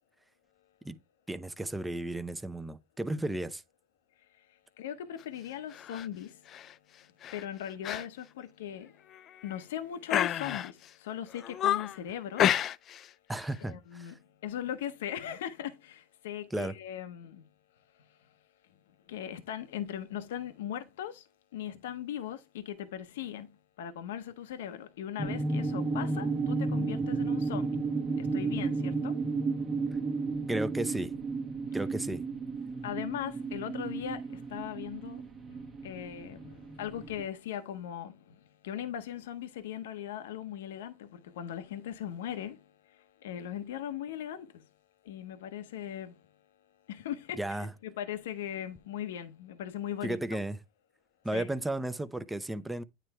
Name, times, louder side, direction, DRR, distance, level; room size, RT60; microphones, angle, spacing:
voice 1, 1.3-3.6 13.3-14.2 16.5-16.7 30.5-31.1 31.7-32.2 47.4-47.7 50.0-50.6 51.2-52.8, right 1 dB, 10° right, 0.7 m, -34 dB
voice 2, 4.4-6.5 7.3-12.6 13.7-17.4 18.1-18.2 19.1-27.8 28.2-29.2 32.8-44.7 45.0-46.3 46.9-50.2 51.3-51.5, left 10 dB, 85° left, 0.8 m, -39 dB
sound 1, 5.7-6.1 6.5-6.7 7.2-7.4 7.8-8.1 8.4-8.5 9.1-9.6 10.1-10.9 11.3-12.0 12.4-13.1 13.3-13.6, left 11 dB, 45° left, 0.4 m, -30 dB
sound 2, 25.2-37.2, right 3 dB, 30° right, 1.1 m, -33 dB
9.1 x 3.3 x 4.5 m
supercardioid pair, 105°, 0 cm